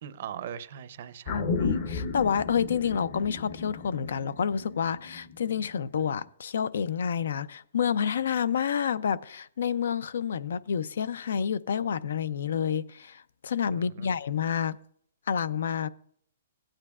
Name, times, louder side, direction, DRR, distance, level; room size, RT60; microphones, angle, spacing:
voice 1, 0.0-1.4 13.7-14.2, right 9 dB, 50° right, 0.6 m, -40 dB
voice 2, 1.3-14.8 15.3-15.9, left 7 dB, 70° left, 0.4 m, -29 dB
sound 1, 1.3-5.9 6.2-6.3, left 4 dB, 45° left, 0.8 m, -34 dB
16.5 x 8.9 x 2.4 m
hypercardioid pair, 160°, 0 cm